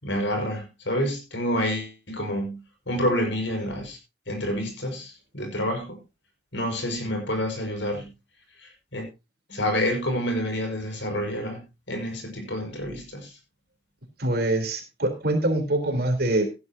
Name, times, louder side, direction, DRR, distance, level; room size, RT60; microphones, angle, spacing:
voice 1, 0.0-2.6 2.9-4.0 4.3-6.0 6.5-8.1 8.6-9.0 9.5-11.6 11.9-13.3, equal, 70° left, 4 dB, 5.8 m, -28 dB
voice 2, 14.2-16.5, right 1 dB, 55° right, 5 dB, 3.9 m, -24 dB
17.0 x 11.5 x 2.9 m, 0.27 s
head